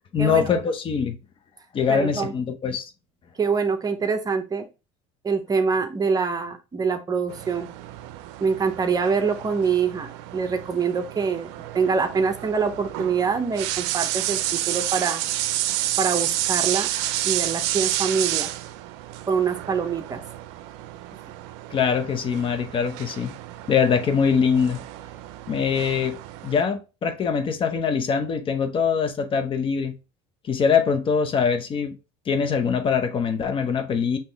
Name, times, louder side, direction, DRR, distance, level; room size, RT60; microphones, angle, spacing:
voice 1, 0.1-1.2 1.7-2.8 21.7-23.3 23.7-24.8 25.5-26.2 26.4-30.0 30.5-31.9 32.3-34.2, left 6 dB, 40° left, 0.8 m, -23 dB
voice 2, 1.9-2.3 3.4-4.7 5.2-7.7 8.4-14.4 14.7-15.2 16.0-16.9 17.2-18.5 19.3-20.2, right 5 dB, 25° right, 0.8 m, -25 dB
sound 1, 7.3-26.6, right 14 dB, 70° right, 0.5 m, -30 dB
5.3 x 3.0 x 3.4 m
hypercardioid pair, 85°, 14 cm